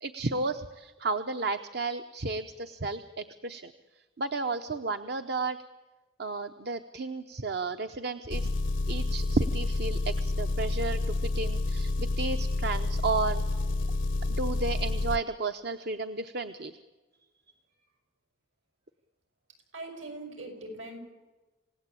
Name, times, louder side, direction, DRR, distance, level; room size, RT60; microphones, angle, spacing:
voice 1, 0.0-3.7 4.2-5.6 6.2-8.5 8.9-13.4 14.3-16.7, right 3 dB, 55° right, 9 dB, 0.9 m, -32 dB
Engine, 8.3-15.2, left 2 dB, 70° left, 0.7 m, -29 dB
voice 2, 19.7-21.0, right 2 dB, 75° right, 4 dB, 6.7 m, -41 dB
28.0 x 17.5 x 8.5 m, 1.2 s
head